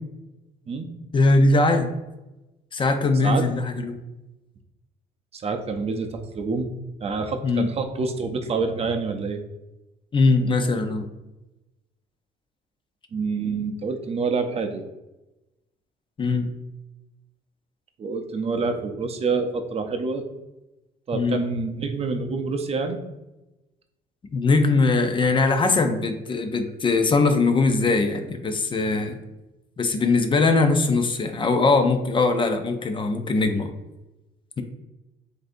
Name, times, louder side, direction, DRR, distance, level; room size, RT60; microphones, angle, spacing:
voice 1, 1.1-1.9 2.7-4.0 7.4-7.7 10.1-11.1 16.2-16.5 21.1-21.4 24.3-29.2 29.8-33.7, left 3 dB, 30° left, 6 dB, 0.6 m, -21 dB
voice 2, 5.3-6.7 7.0-9.4 13.1-14.9 18.0-20.2 21.1-23.0, right 4 dB, 35° right, 5 dB, 0.6 m, -27 dB
7.6 x 2.7 x 2.6 m, 1.0 s
cardioid pair, 110°, 17 cm